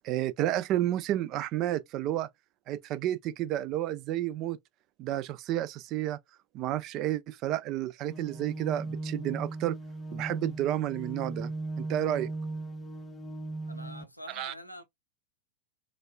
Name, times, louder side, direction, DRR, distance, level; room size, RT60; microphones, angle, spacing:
voice 1, 0.0-2.3 2.7-4.6 5.0-6.2 6.5-9.8 10.1-11.5 11.8-12.3 14.4-14.5, right 13 dB, 35° right, 0.3 m, -31 dB
sound 1, 8.1-14.0, right 2 dB, 15° left, 0.5 m, -37 dB
voice 2, 13.7-14.8, equal, 90° left, 0.6 m, -45 dB
3.9 x 2.3 x 2.3 m
figure-of-eight pair, 90°, 0 cm